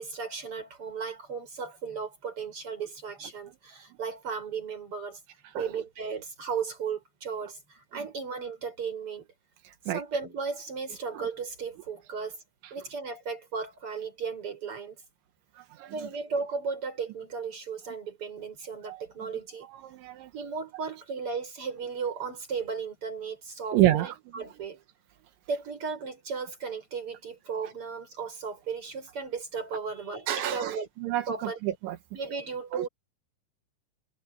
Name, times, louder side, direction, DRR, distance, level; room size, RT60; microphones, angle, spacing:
voice 1, 0.0-5.2 5.5-9.3 9.9-12.4 12.7-15.0 15.9-19.7 20.3-24.8 25.5-30.9 31.3-31.6 32.1-32.9, right 5 dB, 30° right, 7.0 m, -35 dB
voice 2, 19.8-20.3 23.7-24.1 30.3-32.0 32.7-32.9, right 14 dB, 85° right, 3.8 m, -27 dB
omnidirectional pair, 5.2 m